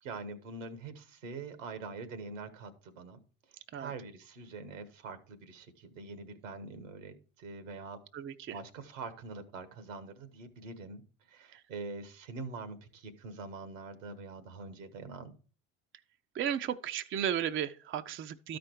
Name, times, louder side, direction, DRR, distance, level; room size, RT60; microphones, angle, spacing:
voice 1, 0.0-3.2 3.8-8.0 8.5-11.0 11.3-15.4, right 3 dB, 80° right, 1.4 m, -44 dB
voice 2, 8.1-8.6 11.5-11.6 16.3-18.6, right 9 dB, 30° right, 0.6 m, -34 dB
13.0 x 5.1 x 4.6 m
hypercardioid pair, 65°, 38 cm